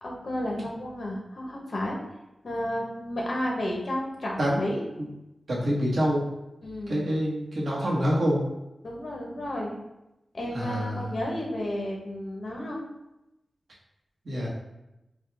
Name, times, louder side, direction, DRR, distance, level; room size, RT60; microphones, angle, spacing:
voice 1, 0.0-2.0 2.4-4.8 6.6-7.0 8.8-9.7 10.3-12.8, left 1 dB, 55° left, -2 dB, 1.0 m, -32 dB
voice 2, 5.5-6.3 6.9-8.4 10.5-11.1 14.2-14.5, equal, 80° right, -5 dB, 1.2 m, -26 dB
5.0 x 2.3 x 3.3 m, 0.92 s
wide cardioid pair, 105°, 0 cm